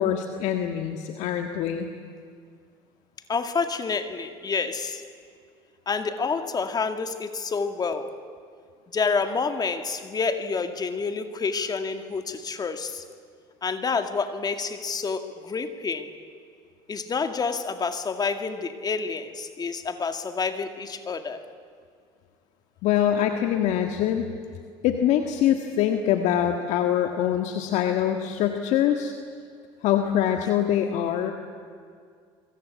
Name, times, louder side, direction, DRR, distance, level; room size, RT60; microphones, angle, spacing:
voice 1, 0.0-1.9 22.8-24.3 24.8-29.1 29.8-31.3, left 10 dB, 70° left, 5 dB, 1.7 m, -24 dB
voice 2, 3.3-5.0 5.9-8.2 8.9-13.0 13.6-16.1 16.9-21.4, left 5 dB, 30° left, 8 dB, 2.2 m, -28 dB
26.0 x 24.0 x 8.4 m, 2.2 s
supercardioid pair, 85°, 13 cm